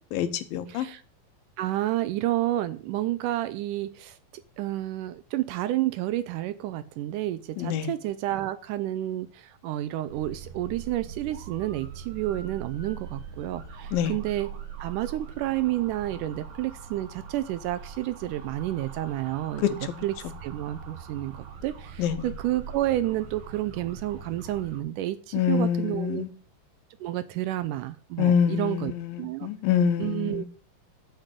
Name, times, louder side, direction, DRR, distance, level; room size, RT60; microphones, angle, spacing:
voice 1, 0.1-0.9 7.6-7.9 13.9-14.2 19.6-19.9 22.0-22.3 25.3-26.3 28.2-30.4, left 8 dB, 85° left, 2.8 m, -26 dB
voice 2, 0.7-1.0 1.6-4.2 4.6-14.5 14.8-20.1 20.4-26.2 27.0-28.9 29.2-29.5 30.0-30.4, right 14 dB, 80° right, 2.0 m, -30 dB
sound 1, 10.1-24.8, right 6 dB, 60° right, 3.2 m, -42 dB
7.5 x 6.4 x 7.7 m
omnidirectional pair, 4.0 m